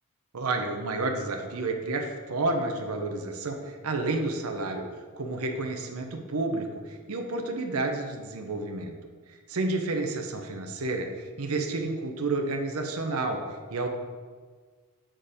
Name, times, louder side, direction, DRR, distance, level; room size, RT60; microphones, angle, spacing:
voice 1, 0.3-4.8 5.1-8.9 9.3-13.4 13.7-13.9, right 2 dB, 75° right, 4 dB, 0.8 m, -30 dB
7.5 x 4.5 x 4.9 m, 1.5 s
head